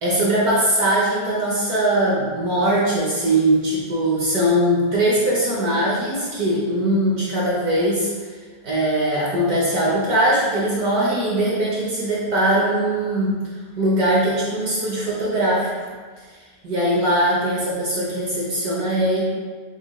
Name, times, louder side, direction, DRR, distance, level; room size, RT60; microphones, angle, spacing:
voice 1, 0.0-8.3 8.6-13.3 13.8-15.9 16.6-19.2, right 1 dB, 60° right, -6 dB, 1.1 m, -21 dB
6.2 x 2.4 x 3.5 m, 1.5 s
omnidirectional pair, 2.4 m